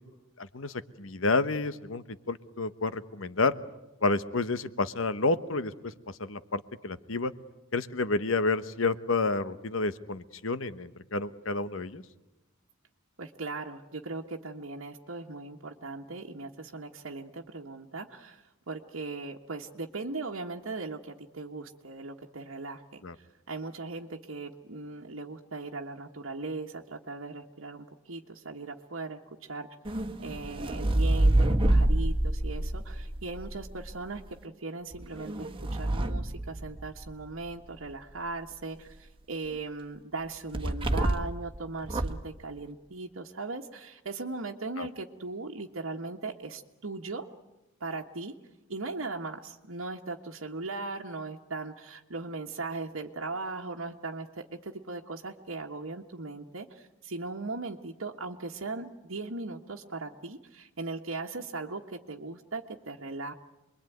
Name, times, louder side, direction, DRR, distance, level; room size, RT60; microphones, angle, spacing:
voice 1, 0.4-3.5 4.0-5.9 6.2-7.3 7.7-12.0 23.0-23.1 44.8-44.9, left 3 dB, 70° left, 13 dB, 1.2 m, -30 dB
voice 2, 13.2-29.7 30.2-47.3 47.8-48.3 48.7-63.3, right 3 dB, 75° right, 0 dB, 1.5 m, -39 dB
sound 1, 29.9-34.0 34.9-37.2 40.5-41.4 41.8-42.3, right 1 dB, 25° right, 1.4 m, -27 dB
27.5 x 22.0 x 9.3 m, 0.98 s
head